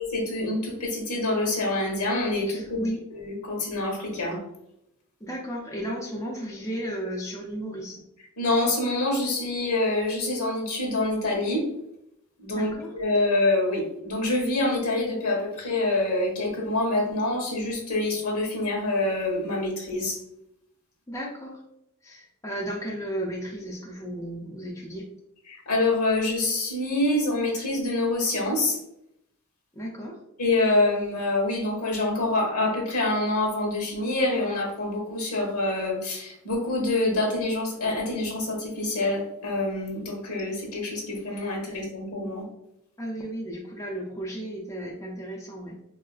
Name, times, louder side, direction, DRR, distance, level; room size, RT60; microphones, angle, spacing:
voice 1, 0.0-4.4 8.4-11.6 12.4-20.2 25.5-28.8 30.4-42.4, left 2 dB, 90° left, 0 dB, 1.0 m, -26 dB
voice 2, 2.5-3.0 5.2-8.0 12.5-12.9 21.1-21.6 22.0-25.1 29.7-30.2 41.7-41.8 43.0-45.8, right 1 dB, 15° left, -2 dB, 0.4 m, -34 dB
3.8 x 2.4 x 2.3 m, 0.80 s
head